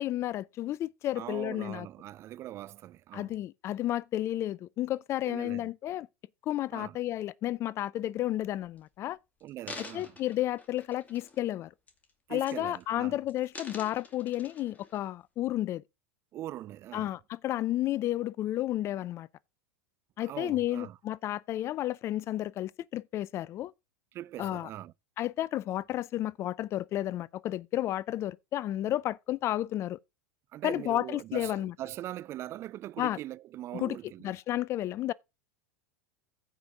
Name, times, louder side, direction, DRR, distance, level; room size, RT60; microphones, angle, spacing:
voice 1, 0.0-1.9 3.1-6.1 6.5-9.2 9.8-11.7 12.3-15.8 16.9-19.3 20.2-23.7 24.4-24.7 25.2-30.0 30.6-31.7 33.0-33.2 33.7-34.0 34.2-35.1, left 13 dB, 40° left, 0.4 m, -32 dB
voice 2, 1.2-3.3 5.2-5.7 6.7-7.0 9.4-10.2 12.3-13.2 16.3-17.1 20.2-21.0 24.1-24.9 30.5-34.3, right 13 dB, 40° right, 0.4 m, -41 dB
sound 1, 8.6-8.8 9.4-11.5 11.9-12.1 12.4-13.0 13.3-15.0 15.6-15.7, left 4 dB, 20° left, 2.4 m, -47 dB
15.0 x 5.2 x 3.7 m
hypercardioid pair, 90°, 7 cm